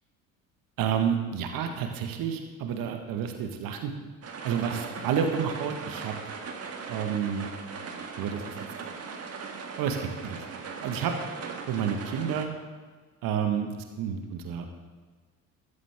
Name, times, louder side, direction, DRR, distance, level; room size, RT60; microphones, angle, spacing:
voice 1, 0.8-3.9 4.4-6.1 6.9-7.5 8.2-8.6 9.8-10.4 10.8-11.1 11.7-12.5 13.2-14.7, right 7 dB, 50° right, 5 dB, 1.7 m, -30 dB
sound 1, 4.2-12.5, right 5 dB, 35° right, 1.8 m, -39 dB
15.5 x 13.0 x 3.7 m, 1.4 s
figure-of-eight pair, 60°, 44 cm